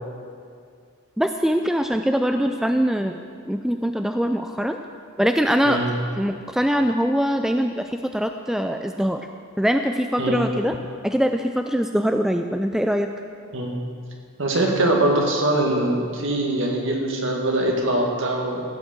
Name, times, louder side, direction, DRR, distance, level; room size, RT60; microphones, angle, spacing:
voice 1, 1.2-3.2 3.5-4.8 5.2-5.8 6.2-9.2 9.6-10.7 11.0-13.1, equal, ahead, 6 dB, 0.3 m, -22 dB
voice 2, 14.4-18.6, right 1 dB, 60° right, 0 dB, 2.0 m, -22 dB
15.5 x 6.3 x 7.3 m, 2.2 s
head